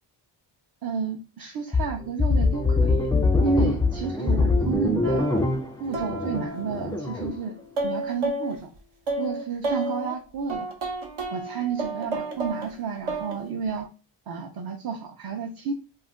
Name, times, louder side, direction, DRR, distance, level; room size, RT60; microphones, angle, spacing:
voice 1, 0.8-3.1 3.4-5.3 5.8-7.6 7.8-8.7 9.2-10.7 11.3-13.9 14.3-15.7, right 5 dB, 50° right, 2 dB, 0.5 m, -31 dB
sound 1, 1.7-7.4, left 3 dB, 10° left, 0.3 m, -23 dB
sound 2, 5.0-5.4 5.9-8.6 9.1-10.1 10.5-12.7 13.1-13.4 13.7-13.8, right 2 dB, 75° right, 0.9 m, -31 dB
2.4 x 2.1 x 3.4 m, 0.33 s
cardioid pair, 80°, 50 cm